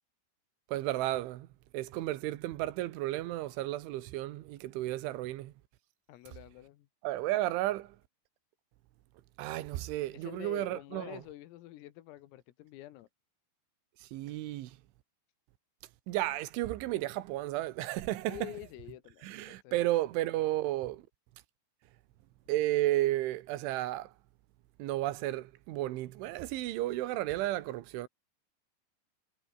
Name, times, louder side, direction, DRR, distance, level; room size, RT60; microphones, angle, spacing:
voice 1, 0.7-1.5 1.7-5.5 7.0-8.0 9.4-11.2 14.0-14.8 16.1-18.5 19.2-21.1 22.5-24.1 24.8-28.1, right 16 dB, 75° right, 3.5 m, -33 dB
voice 2, 6.1-6.9 10.1-13.1 18.3-19.9, left 15 dB, 80° left, 4.1 m, -47 dB
omnidirectional pair, 6.0 m